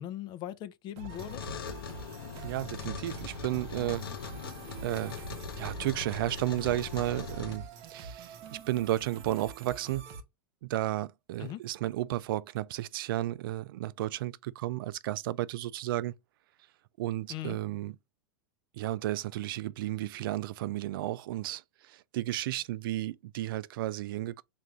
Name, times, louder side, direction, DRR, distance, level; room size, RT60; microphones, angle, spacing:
voice 1, 0.0-1.5 11.4-11.6 17.3-17.6, left 12 dB, 40° left, 0.5 m, -39 dB
sound 1, 1.0-10.2, right 5 dB, 50° right, 0.9 m, -45 dB
sound 2, 1.1-7.6, left 7 dB, 80° left, 0.7 m, -41 dB
voice 2, 2.4-4.1 4.8-10.1 10.6-16.1 17.0-17.9 18.8-21.6 22.1-24.4, right 15 dB, 70° right, 0.4 m, -33 dB
3.5 x 2.6 x 4.3 m
hypercardioid pair, 115°, 12 cm